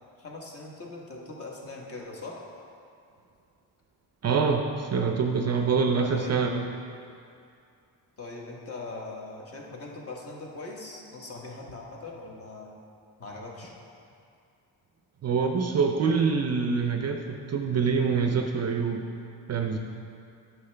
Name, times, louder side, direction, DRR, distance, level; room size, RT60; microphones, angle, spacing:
voice 1, 0.2-2.4 6.1-6.4 8.2-12.7 13.2-13.8, left 3 dB, 35° left, -1 dB, 1.2 m, -41 dB
voice 2, 4.2-6.7 15.2-19.1 19.5-19.8, right 5 dB, 40° right, 4 dB, 0.5 m, -25 dB
9.5 x 6.2 x 3.3 m, 2.4 s
cardioid pair, 105°, 40 cm